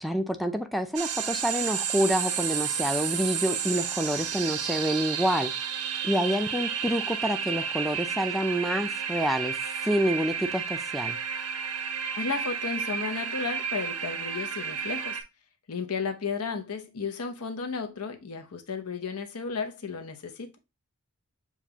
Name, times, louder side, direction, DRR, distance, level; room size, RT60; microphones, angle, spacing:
voice 1, 0.0-5.5 6.0-9.6 9.8-11.2, equal, ahead, 0.4 m, -27 dB
sound 1, 0.9-15.2, right 7 dB, 90° right, 0.8 m, -31 dB
voice 2, 12.2-15.2 15.7-20.6, left 5 dB, 80° left, 0.8 m, -33 dB
7.2 x 2.4 x 2.8 m
head